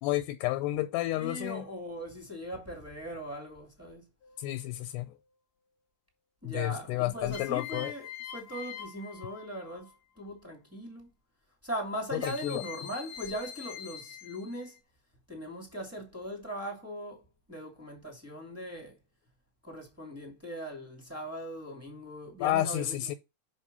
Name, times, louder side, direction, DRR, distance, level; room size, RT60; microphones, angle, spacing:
voice 1, 0.0-1.7 4.4-5.1 6.5-7.9 12.1-12.6 22.4-23.2, left 15 dB, 85° left, 2.6 m, -31 dB
voice 2, 1.1-4.0 6.4-9.9 10.2-11.1 11.6-14.8 15.3-17.2 17.5-18.9 19.6-23.1, equal, 5° right, 1.5 m, -40 dB
sound 1, 4.2-4.8 7.3-10.0 12.2-14.8, left 10 dB, 65° left, 1.3 m, -44 dB
6.2 x 5.0 x 5.5 m
omnidirectional pair, 4.9 m